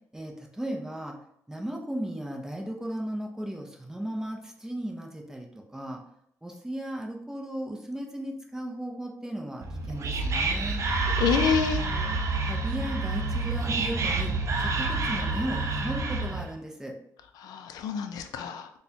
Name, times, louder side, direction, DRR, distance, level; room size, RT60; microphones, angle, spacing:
voice 1, 0.1-1.2 1.5-5.5 5.7-6.0 6.4-10.8 11.8-12.1 12.4-14.3 14.6-16.9, right 1 dB, 10° right, 1 dB, 0.6 m, -36 dB
Whispering, 9.6-16.5, right 3 dB, 50° right, 0.5 m, -28 dB
voice 2, 11.2-11.9 17.4-18.7, left 7 dB, 85° left, 7 dB, 0.4 m, -28 dB
4.0 x 2.2 x 2.8 m, 0.74 s
cardioid pair, 95°, 6 cm